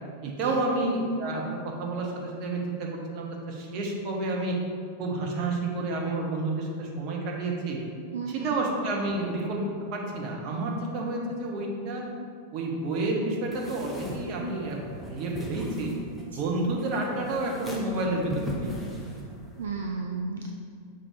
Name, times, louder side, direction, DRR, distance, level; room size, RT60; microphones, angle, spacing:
voice 1, 0.2-4.5 5.0-7.8 8.3-9.6 9.9-12.0 12.5-15.9 16.3-18.9, right 2 dB, 40° right, -1 dB, 1.0 m, -30 dB
voice 2, 8.1-8.5 16.3-16.4 19.6-20.5, right 4 dB, 65° right, 2 dB, 0.3 m, -33 dB
sound 1, 13.5-19.6, equal, 5° left, 0.9 m, -39 dB
5.8 x 3.5 x 4.7 m, 2.4 s
figure-of-eight pair, 90°, 0 cm